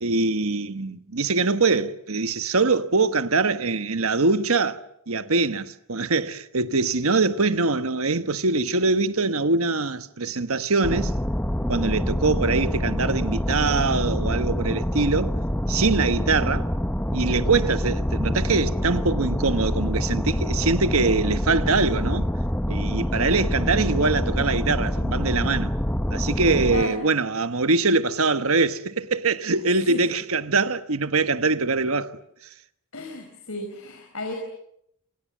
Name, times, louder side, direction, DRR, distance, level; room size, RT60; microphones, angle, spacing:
voice 1, 0.0-11.1 11.7-15.4 15.7-16.7 17.1-22.3 22.7-25.8 26.1-32.1, right 3 dB, 70° right, 1.3 m, -23 dB
sound 1, 10.8-26.8, equal, 10° left, 1.0 m, -26 dB
voice 2, 32.9-34.3, left 2 dB, 70° left, 4.9 m, -33 dB
29.0 x 27.0 x 7.4 m
head